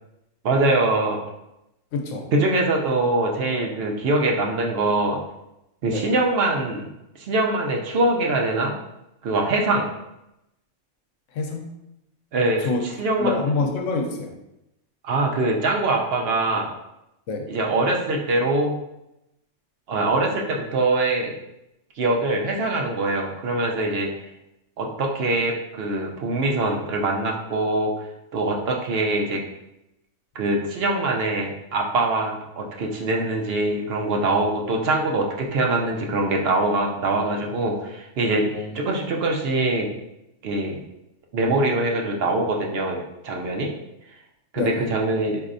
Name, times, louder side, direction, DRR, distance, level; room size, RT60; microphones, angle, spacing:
voice 1, 0.4-1.2 2.3-5.2 5.8-6.9 7.2-8.7 9.2-9.9 12.3-13.4 15.0-16.7 17.5-18.8 19.9-21.3 22.0-24.1 24.8-28.1 28.3-29.4 30.3-39.9 40.4-40.8 41.3-43.7 44.5-45.4, right 2 dB, 60° right, 0 dB, 0.7 m, -23 dB
voice 2, 1.9-2.3 5.9-6.0 11.3-11.7 12.6-12.9 13.2-14.3 17.3-17.5 38.5-38.8 44.6-44.9, left 3 dB, 80° left, 3 dB, 0.9 m, -26 dB
4.2 x 2.7 x 2.5 m, 0.87 s
omnidirectional pair, 1.3 m